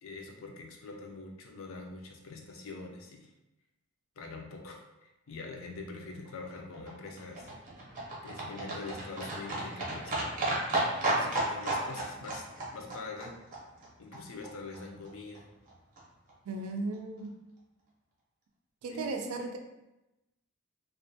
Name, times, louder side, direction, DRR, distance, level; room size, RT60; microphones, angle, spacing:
voice 1, 0.0-3.3 4.2-7.5 8.2-10.2 11.1-12.4 12.7-13.4 14.0-15.5 18.9-19.1, left 3 dB, 65° left, 2 dB, 0.4 m, -44 dB
Livestock farm animals working animals, 6.3-14.5 14.7-14.8 15.1-15.2 15.4-15.5 15.7-15.8 16.0-16.1 16.3-16.4 16.6-16.7 16.9-17.0, right 2 dB, 40° right, 0.6 m, -34 dB
voice 2, 16.5-17.3 18.8-19.6, right 3 dB, 85° right, 4 dB, 0.4 m, -35 dB
2.4 x 2.1 x 2.7 m, 0.94 s
head